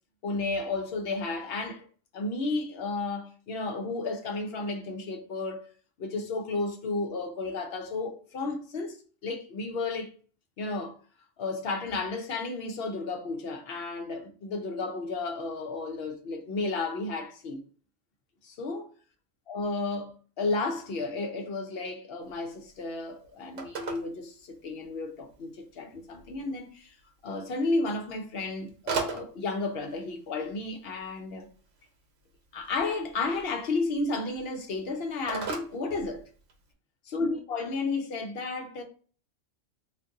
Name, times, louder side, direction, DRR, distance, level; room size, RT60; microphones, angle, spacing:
voice 1, 0.2-1.8 2.1-5.7 6.0-9.0 9.2-10.1 10.6-11.0 11.4-17.6 18.4-18.9 19.5-26.9 27.2-31.5 32.5-36.3 37.1-38.8, left 3 dB, 60° left, 0.8 m, -32 dB
Telephone, 22.2-36.7, right 6 dB, 80° right, 1.0 m, -42 dB
2.6 x 2.5 x 3.5 m
omnidirectional pair, 1.3 m